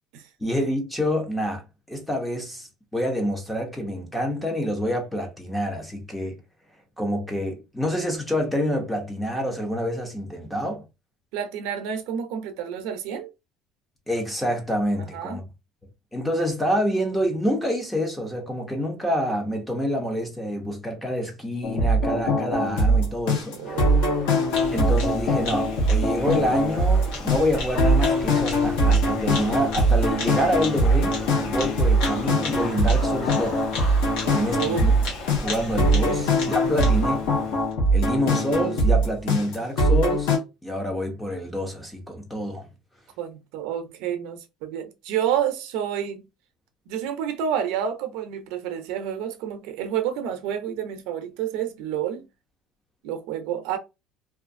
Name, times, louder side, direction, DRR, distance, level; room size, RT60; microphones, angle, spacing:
voice 1, 0.4-1.6 1.9-6.4 7.0-10.8 14.1-15.4 16.1-23.6 24.7-33.6 34.3-34.9 35.4-37.3 37.9-40.3 40.6-42.6, equal, 5° left, 0.6 m, -27 dB
voice 2, 11.3-13.3 15.0-15.4 23.5-24.4 34.2-34.9 36.1-36.7 43.2-46.2 46.9-52.2 53.0-53.8, right 9 dB, 70° right, 0.6 m, -29 dB
sound 1, 21.6-40.4, right 1 dB, 90° left, 1.1 m, -22 dB
sound 2, 23.6-37.6, left 3 dB, 30° left, 1.1 m, -38 dB
Bird vocalization bird call bird song, 24.5-37.7, left 2 dB, 65° left, 1.1 m, -36 dB
2.6 x 2.4 x 2.5 m
cardioid pair, 170°, 0 cm